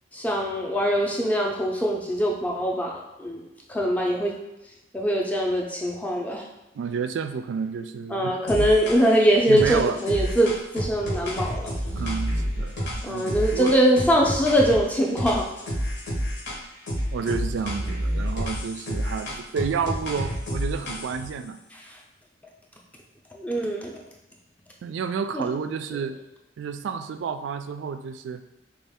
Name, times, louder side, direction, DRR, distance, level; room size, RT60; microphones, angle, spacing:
voice 1, 0.1-2.9 3.2-4.3 4.9-6.5 8.1-11.6 13.0-15.5 21.7-21.9 23.3-24.0 25.3-25.4, equal, 10° left, -1 dB, 0.5 m, -22 dB
voice 2, 6.7-8.3 8.6-8.7 9.5-10.0 11.9-13.7 17.1-21.6 24.8-26.2 26.6-28.4, right 6 dB, 80° right, 9 dB, 0.3 m, -30 dB
sound 1, 8.5-9.2 9.6-14.8 15.2-16.6 16.9-21.3, equal, 65° left, 0.9 m, -29 dB
4.3 x 2.3 x 3.5 m, 0.99 s
head